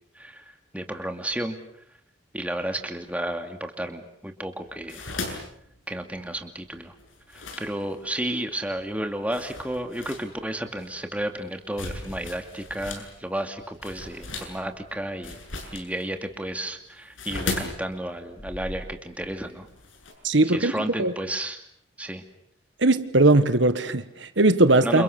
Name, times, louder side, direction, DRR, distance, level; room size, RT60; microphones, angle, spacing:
voice 1, 0.2-1.6 2.3-5.1 5.9-6.9 7.3-15.4 15.7-19.7 20.5-21.6 22.0-22.2 24.8-25.0, right 1 dB, 5° right, 2.5 m, -32 dB
sound 1, 4.6-8.2 8.8-8.9 9.3-13.1 13.4-20.1, left 2 dB, 90° left, 7.9 m, -37 dB
voice 2, 20.2-20.7 21.0-21.1 22.8-25.0, right 2 dB, 75° right, 1.6 m, -19 dB
29.5 x 29.0 x 6.9 m
head